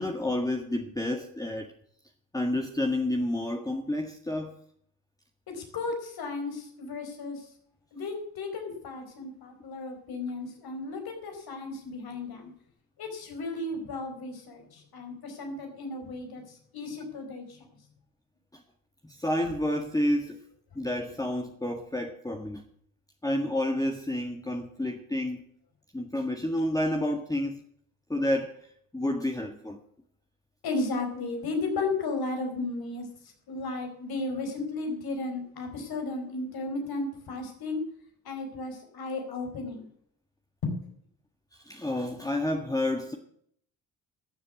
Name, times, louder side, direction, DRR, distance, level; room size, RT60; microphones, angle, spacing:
voice 1, 0.0-1.7 2.3-4.6 18.5-18.6 19.0-20.4 20.7-22.6 23.2-25.4 25.9-27.6 28.1-28.6 28.9-29.8 41.6-43.2, left 1 dB, 10° left, 1.6 m, -29 dB
voice 2, 5.5-7.5 7.9-12.5 13.0-17.6 30.6-33.1 33.5-37.8 38.2-39.9 40.6-40.8, left 3 dB, 65° left, 4.5 m, -34 dB
14.0 x 7.2 x 8.2 m
supercardioid pair, 55°, 39 cm